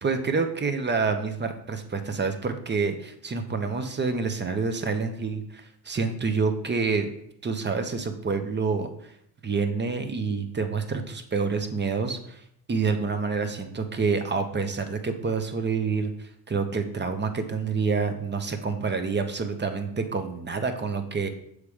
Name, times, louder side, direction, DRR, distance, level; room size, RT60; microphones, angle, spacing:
voice 1, 0.0-7.1 7.4-8.9 9.4-12.4 12.7-21.3, right 4 dB, 25° right, 8 dB, 0.7 m, -28 dB
6.8 x 3.2 x 4.8 m, 0.72 s
cardioid pair, 100°, 46 cm